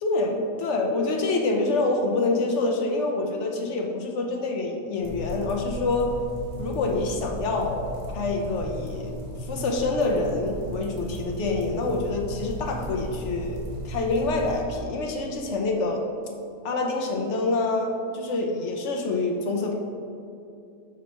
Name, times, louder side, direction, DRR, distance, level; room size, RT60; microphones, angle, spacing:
voice 1, 0.0-6.1 6.6-7.9 8.1-9.1 9.4-16.1 16.6-19.7, left 3 dB, 60° left, 1 dB, 1.0 m, -26 dB
sound 1, 5.0-14.6, right 1 dB, 45° right, 1.2 m, -36 dB
6.3 x 4.2 x 4.2 m, 2.6 s
omnidirectional pair, 1.5 m